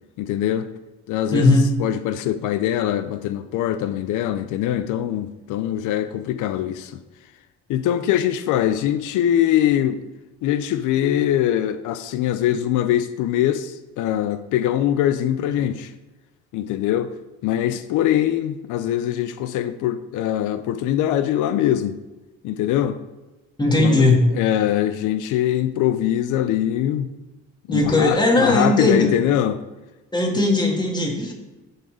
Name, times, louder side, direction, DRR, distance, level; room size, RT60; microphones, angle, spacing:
voice 1, 0.2-0.7 1.1-7.0 7.7-10.0 10.4-15.9 16.5-17.1 17.4-22.0 22.4-23.0 23.8-27.1 27.7-29.6 30.3-30.4, left 11 dB, 90° left, 0.5 m, -22 dB
voice 2, 1.3-1.7 23.6-24.3 27.7-29.1 30.1-31.3, left 2 dB, 15° left, 1.8 m, -18 dB
11.0 x 4.0 x 4.9 m
cardioid pair, 90°, 30 cm